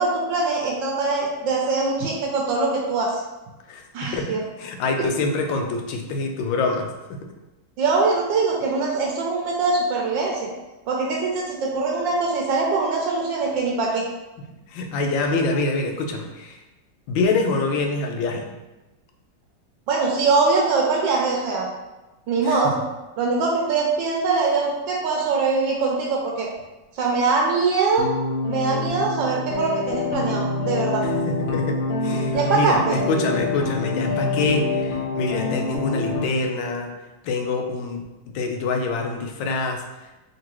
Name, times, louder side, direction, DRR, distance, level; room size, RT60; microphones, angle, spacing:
voice 1, 0.0-3.2 3.9-4.4 5.0-5.1 7.8-10.4 10.9-14.1 19.9-21.7 22.3-22.7 23.2-26.5 26.9-28.1 28.5-31.0 32.3-33.0, right 4 dB, 80° right, -1 dB, 1.3 m, -22 dB
voice 2, 3.7-6.9 14.7-16.6 17.1-18.5 22.4-22.6 31.0-36.9 37.2-38.0 38.3-39.8, left 3 dB, 90° left, 3 dB, 1.3 m, -25 dB
sound 1, 28.0-36.3, left 3 dB, 70° left, 0.6 m, -26 dB
3.8 x 3.0 x 2.9 m, 1.1 s
omnidirectional pair, 2.0 m